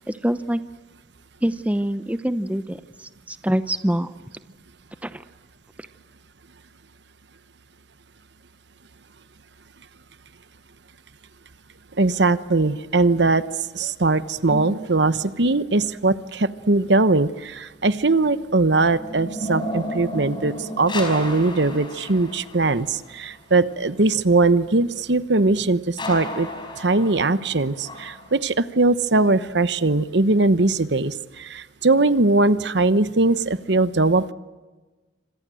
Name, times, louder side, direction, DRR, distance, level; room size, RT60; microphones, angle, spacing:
voice 1, 0.2-0.6 1.4-2.8 3.3-4.1 5.0-5.2, equal, 10° right, 11 dB, 0.8 m, -24 dB
voice 2, 12.0-13.4 13.7-26.5 26.8-34.3, right 3 dB, 65° right, 13 dB, 1.0 m, -20 dB
sound 1, 14.5-15.8 18.3-23.1 26.0-28.4, equal, 25° left, 5.0 m, -33 dB
27.0 x 26.0 x 7.7 m, 1.2 s
head